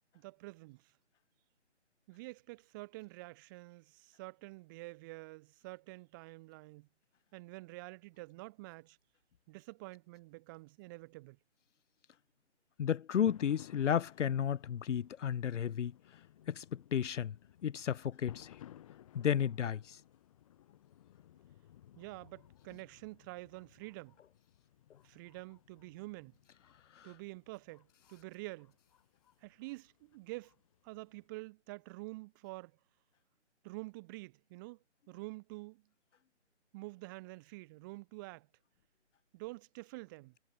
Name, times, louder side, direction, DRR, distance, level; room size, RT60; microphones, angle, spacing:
voice 1, 0.1-0.9 2.1-6.9 7.3-9.0 9.5-11.4 21.9-24.2 25.0-26.4 27.0-28.7 29.4-30.5 30.8-32.7 33.6-35.9 36.7-38.5 39.3-40.4, right 23 dB, 15° right, 3.0 m, -48 dB
voice 2, 12.8-15.9 16.5-16.6 16.9-17.3 17.6-18.5 19.1-19.8, left 9 dB, 85° left, 0.5 m, -32 dB
sound 1, 13.3-31.3, left 12 dB, 30° left, 7.3 m, -59 dB
figure-of-eight pair, 155°, 36 cm